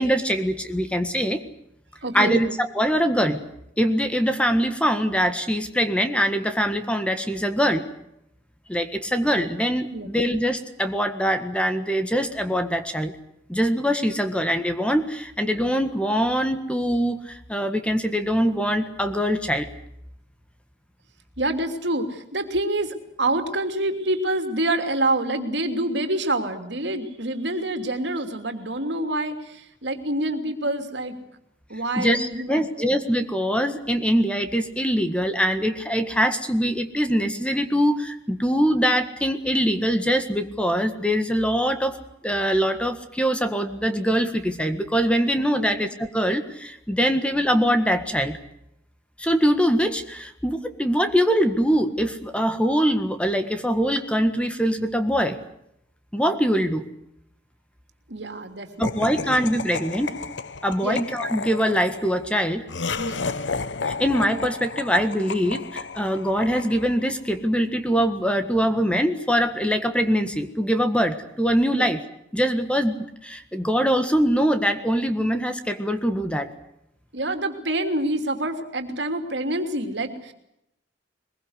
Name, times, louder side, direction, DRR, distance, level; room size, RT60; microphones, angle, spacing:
voice 1, 0.0-1.4 2.1-3.4 3.8-7.9 8.7-13.1 13.5-19.7 32.0-42.0 42.2-48.4 49.2-55.4 56.1-56.8 58.8-60.2 60.6-62.7 63.8-72.0 72.3-76.5, equal, 5° left, 8 dB, 1.6 m, -23 dB
voice 2, 2.0-2.5 9.9-10.1 21.4-31.2 31.7-32.9 45.6-45.8 58.1-59.3 60.8-61.0 63.0-63.3 71.7-71.9 77.1-80.3, right 1 dB, 65° right, 7 dB, 3.0 m, -27 dB
Laughter, 58.8-67.2, left 4 dB, 75° left, 1.0 m, -32 dB
22.5 x 21.5 x 8.1 m, 0.79 s
head